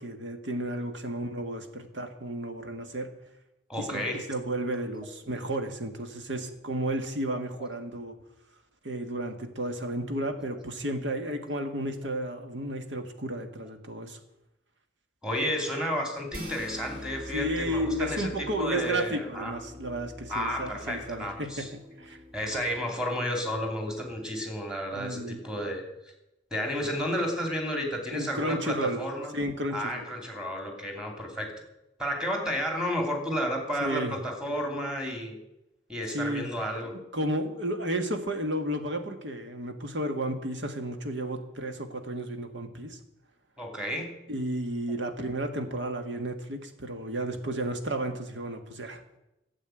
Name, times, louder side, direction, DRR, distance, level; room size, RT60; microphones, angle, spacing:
voice 1, 0.0-3.1 3.8-8.2 8.8-14.2 17.3-22.2 24.9-25.4 28.1-29.0 29.3-30.1 33.8-34.2 36.1-36.5 37.1-43.0 44.3-49.0, right 1 dB, 75° right, 6 dB, 1.7 m, -32 dB
voice 2, 3.7-4.2 7.6-7.7 15.2-19.5 20.3-21.7 22.3-25.8 26.5-29.3 29.7-31.5 32.0-35.3 35.9-36.9 43.6-44.1, equal, 5° right, 2 dB, 2.9 m, -32 dB
sound 1, 16.3-22.8, left 1 dB, 55° right, 2.7 m, -44 dB
12.5 x 7.9 x 9.0 m, 0.89 s
head